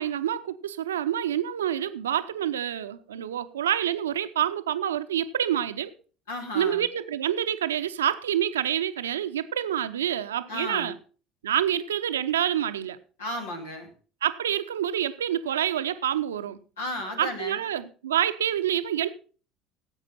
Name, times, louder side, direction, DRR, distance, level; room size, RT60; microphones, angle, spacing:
voice 1, 0.0-5.9 6.5-11.0 11.4-13.0 14.2-16.6 17.2-19.1, right 10 dB, 75° right, 0.7 m, -27 dB
voice 2, 6.3-6.8 10.5-10.9 13.2-13.9 16.8-17.6, left 1 dB, 75° left, 2.6 m, -34 dB
17.0 x 8.1 x 4.3 m
figure-of-eight pair, 65°, 0 cm